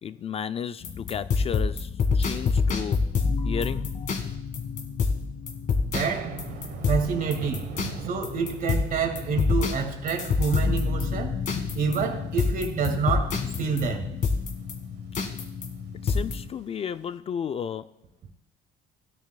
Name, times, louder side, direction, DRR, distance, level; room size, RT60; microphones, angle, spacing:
voice 1, 0.0-4.1 16.0-17.9, left 8 dB, 35° left, 0.3 m, -33 dB
sound 1, 0.8-16.5, left 5 dB, 50° left, 1.7 m, -28 dB
voice 2, 5.8-6.4 6.9-7.7 8.0-11.4 11.7-14.2, right 6 dB, 55° right, 1.8 m, -28 dB
Thunder, 5.9-17.0, right 7 dB, 80° right, 1.1 m, -43 dB
16.5 x 10.0 x 2.2 m
cardioid pair, 110°, 17 cm